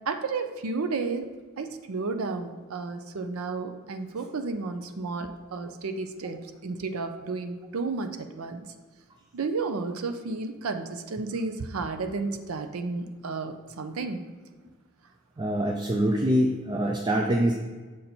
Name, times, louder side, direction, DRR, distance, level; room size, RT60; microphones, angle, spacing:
voice 1, 0.1-1.3 1.6-8.6 9.3-14.2, right 4 dB, 80° right, 8 dB, 0.6 m, -32 dB
voice 2, 15.4-17.5, right 1 dB, 20° right, 2 dB, 0.4 m, -24 dB
6.5 x 4.0 x 4.3 m, 1.4 s
head